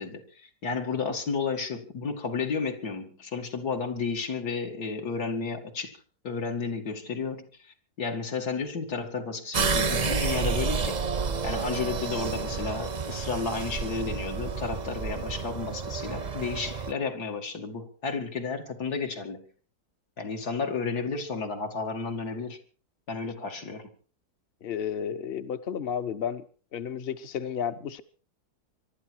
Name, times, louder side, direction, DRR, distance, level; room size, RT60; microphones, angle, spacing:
voice 1, 0.0-5.9 6.2-7.5 8.0-11.0 11.4-19.4 20.2-22.6 23.1-23.9, left 4 dB, 70° left, 2.8 m, -32 dB
sound 1, 9.5-16.9, right 5 dB, 35° right, 0.7 m, -30 dB
voice 2, 24.6-26.4 26.7-28.0, left 8 dB, 40° left, 1.1 m, -32 dB
25.0 x 12.5 x 4.6 m
omnidirectional pair, 1.7 m